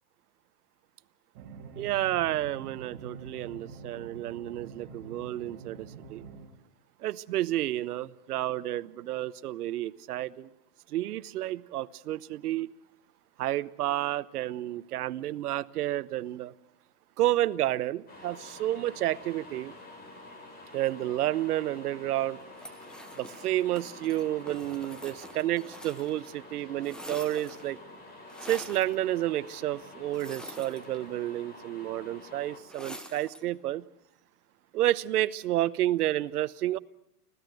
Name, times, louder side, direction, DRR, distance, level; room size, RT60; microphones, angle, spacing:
sound 1, 1.3-6.5, right 4 dB, 40° right, 3.8 m, -46 dB
voice 1, 1.8-6.2 7.0-10.5 10.9-12.7 13.4-16.5 17.2-19.7 20.7-22.4 23.1-27.8 28.4-33.8 34.7-36.8, right 14 dB, 75° right, 1.0 m, -30 dB
sound 2, 18.1-32.6, left 2 dB, 20° left, 4.4 m, -48 dB
sound 3, 22.5-26.3 26.6-27.8 28.3-28.9 30.1-31.3 32.7-33.5, equal, ahead, 0.8 m, -46 dB
25.5 x 17.0 x 7.9 m
supercardioid pair, 155°, 46 cm